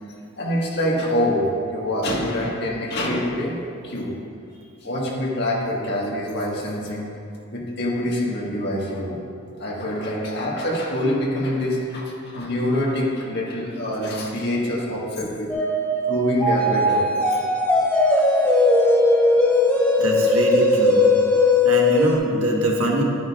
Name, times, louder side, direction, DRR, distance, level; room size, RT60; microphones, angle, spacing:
voice 1, 0.1-3.5 3.8-4.2 4.8-7.1 7.5-9.2 9.6-15.5 16.1-17.4, left 1 dB, 50° left, -4 dB, 1.6 m, -25 dB
sound 1, 15.5-22.2, left 2 dB, 5° left, 0.9 m, -18 dB
voice 2, 18.0-18.5 20.0-21.0 21.6-23.0, right 1 dB, 90° right, -1 dB, 1.4 m, -25 dB
11.5 x 9.1 x 2.4 m, 2.4 s
head